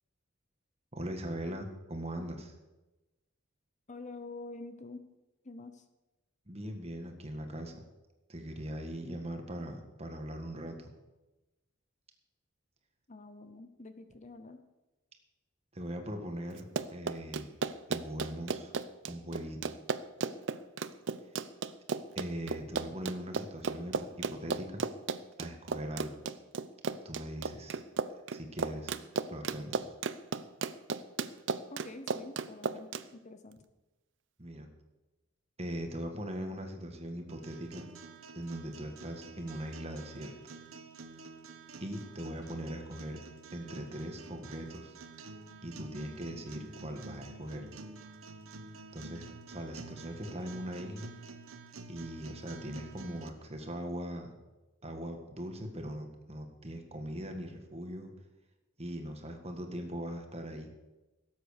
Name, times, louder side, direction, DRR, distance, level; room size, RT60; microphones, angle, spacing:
voice 1, 0.9-2.5 6.5-7.8 8.3-10.9 15.7-17.6 17.9-18.7 19.1-19.6 22.1-24.9 25.4-26.2 27.0-27.8 28.3-29.0 29.3-29.9 34.4-34.7 35.6-37.9 38.3-40.4 41.8-43.2 43.5-45.0 45.6-47.7 48.9-51.1 51.9-54.3 54.8-58.1 58.8-60.7, equal, 30° right, 5 dB, 1.7 m, -40 dB
voice 2, 3.9-5.0 5.4-5.9 13.1-14.6 31.7-33.6, left 2 dB, 35° left, 9 dB, 0.8 m, -47 dB
Run, 16.6-33.0, right 5 dB, 60° right, 0.6 m, -35 dB
sound 1, 37.3-53.3, right 3 dB, 85° right, 1.1 m, -49 dB
17.0 x 7.9 x 6.6 m, 1.1 s
head